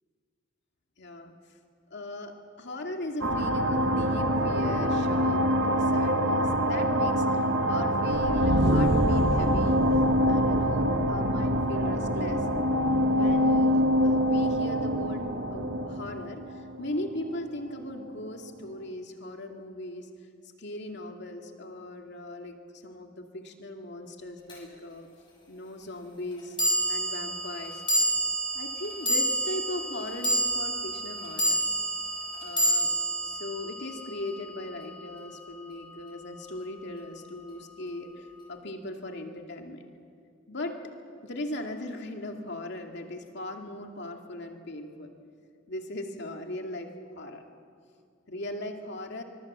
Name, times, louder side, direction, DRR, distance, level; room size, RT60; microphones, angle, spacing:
voice 1, 1.0-1.3 1.9-7.4 7.7-9.8 10.3-12.4 13.1-15.2 15.5-16.4 16.8-20.1 20.6-22.6 22.8-25.1 25.5-26.6 26.9-27.8 28.5-31.6 32.4-32.9 33.2-39.9 40.5-40.7 41.2-45.1 45.7-46.9 47.2-47.4 48.3-49.2, left 1 dB, 65° left, 3 dB, 2.4 m, -38 dB
sound 1, 3.2-17.4, equal, 75° right, 1.6 m, -25 dB
sound 2, 24.5-24.6 26.6-35.0, right 1 dB, 25° left, 7.0 m, -29 dB
24.0 x 22.5 x 7.4 m, 2.3 s
head